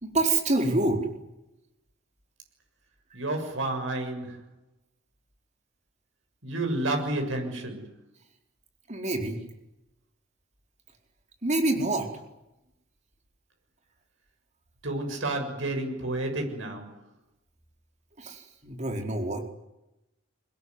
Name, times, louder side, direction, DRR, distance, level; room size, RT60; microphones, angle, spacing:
voice 1, 0.0-1.1 8.9-9.4 11.4-12.1 18.2-19.5, right 2 dB, 35° right, 4.5 m, -27 dB
voice 2, 3.1-4.4 6.4-7.8 14.8-16.9, right 2 dB, 70° right, 7.1 m, -30 dB
25.0 x 21.0 x 9.8 m
head